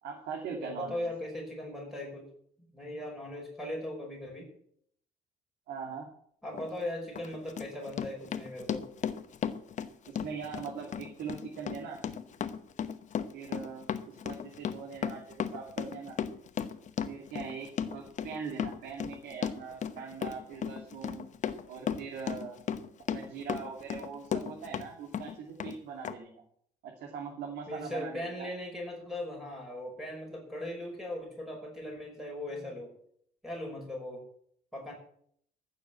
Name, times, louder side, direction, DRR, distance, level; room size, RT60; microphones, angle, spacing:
voice 1, 0.0-1.1 5.7-6.1 10.1-12.0 13.3-16.2 17.1-21.3 21.7-22.6 23.1-26.3 26.8-28.5, right 6 dB, 80° right, 0 dB, 2.6 m, -41 dB
voice 2, 0.6-2.3 2.7-4.5 6.4-8.9 20.6-20.7 27.7-32.9 33.4-34.2 34.7-34.9, left 1 dB, ahead, -1 dB, 5.1 m, -39 dB
Run, 6.5-6.7 7.2-24.9 25.1-25.8 26.0-26.1, left 8 dB, 45° left, 1.0 m, -35 dB
14.5 x 7.0 x 7.7 m, 0.66 s
cardioid pair, 110°, 17 cm